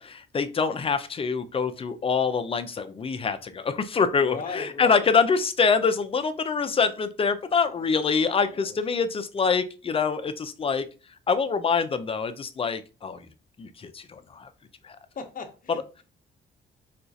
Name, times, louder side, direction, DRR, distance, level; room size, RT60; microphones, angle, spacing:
voice 1, 0.0-10.9 11.3-13.3 13.6-14.5 14.8-15.0, left 5 dB, 30° left, 0.4 m, -25 dB
voice 2, 4.2-5.1 7.8-8.8 15.2-16.0, left 4 dB, 45° left, 0.8 m, -39 dB
4.3 x 2.3 x 2.6 m
cardioid pair, 90°, 20 cm